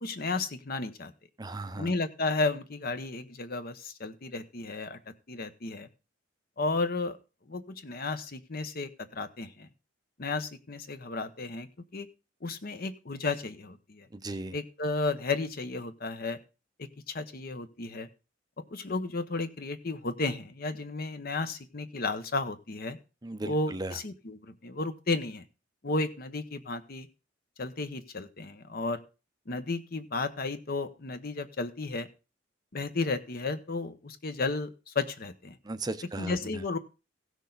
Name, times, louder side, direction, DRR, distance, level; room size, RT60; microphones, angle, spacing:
voice 1, 0.0-1.1 1.8-5.9 6.6-7.2 7.5-9.7 10.2-12.1 12.4-14.1 14.5-16.4 16.8-18.1 18.7-23.0 23.4-25.4 25.8-27.1 27.6-29.0 29.5-32.1 32.7-35.6 36.2-36.8, left 3 dB, 50° left, 11 dB, 0.9 m, -33 dB
voice 2, 1.4-1.9 14.1-14.5 23.2-24.0 35.6-36.4, right 2 dB, 20° right, 11 dB, 0.6 m, -36 dB
16.0 x 6.4 x 3.9 m, 0.31 s
head